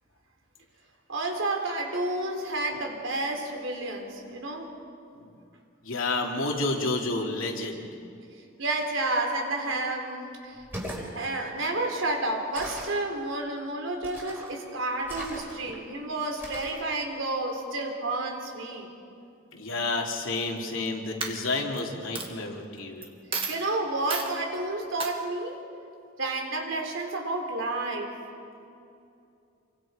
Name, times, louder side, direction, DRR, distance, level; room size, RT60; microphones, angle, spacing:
voice 1, 1.1-4.7 8.6-10.6 11.1-18.9 23.5-25.6 26.2-28.1, right 2 dB, 75° right, 2 dB, 3.7 m, -30 dB
voice 2, 5.8-7.9 19.5-23.1, left 2 dB, 90° left, 1 dB, 3.0 m, -30 dB
sound 1, 10.6-11.1 12.5-13.0 14.0-14.5 15.0-15.8 16.4-16.8, right 1 dB, 10° right, 4.8 m, -39 dB
Coin (dropping), 20.6-20.9 21.2-21.8 22.1-22.3 23.0-23.1 23.3-23.6 24.1-24.3 25.0-25.1, right 4 dB, 25° right, 1.9 m, -32 dB
28.0 x 23.5 x 5.1 m, 2.6 s
head